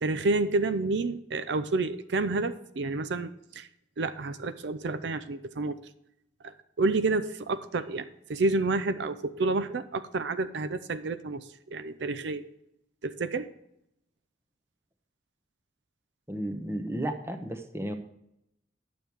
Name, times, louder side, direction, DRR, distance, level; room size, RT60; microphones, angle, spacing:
voice 1, 0.0-3.7 4.0-5.8 6.4-12.5 13.0-13.5, right 3 dB, 75° right, 11 dB, 0.5 m, -29 dB
voice 2, 16.3-17.9, right 1 dB, 15° right, 6 dB, 0.8 m, -33 dB
10.0 x 7.1 x 4.6 m, 0.78 s
head